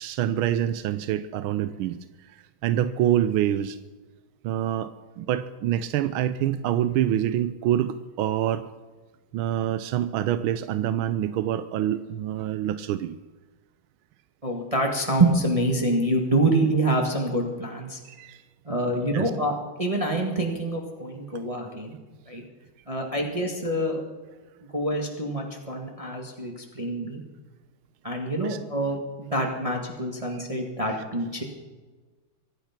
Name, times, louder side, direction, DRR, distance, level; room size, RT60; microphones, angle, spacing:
voice 1, 0.0-2.0 2.3-2.4 2.6-3.8 4.4-8.7 9.3-13.2 18.0-18.4 19.1-19.3 28.4-28.6, right 11 dB, 85° right, 12 dB, 1.5 m, -26 dB
voice 2, 14.4-18.0 18.6-19.5 19.8-22.0 22.2-22.4 22.9-24.0 24.7-27.2 28.0-31.4, right 1 dB, 20° right, 1 dB, 1.7 m, -26 dB
24.5 x 9.4 x 5.9 m, 1.3 s
omnidirectional pair, 2.2 m